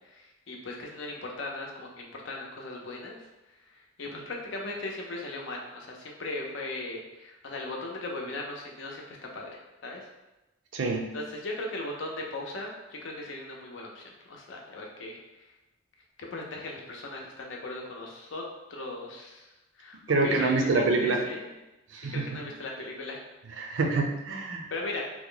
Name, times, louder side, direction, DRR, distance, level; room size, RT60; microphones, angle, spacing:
voice 1, 0.1-3.2 4.0-9.5 9.8-10.1 11.1-15.2 16.2-18.4 18.7-19.5 19.8-21.5 22.1-23.2 23.7-23.8 24.7-25.0, left 2 dB, 75° left, 0 dB, 0.6 m, -38 dB
voice 2, 10.7-11.1 20.1-21.2 21.9-22.4 23.6-24.7, right 3 dB, 70° right, 3 dB, 0.5 m, -26 dB
2.9 x 2.2 x 3.8 m, 1.0 s
head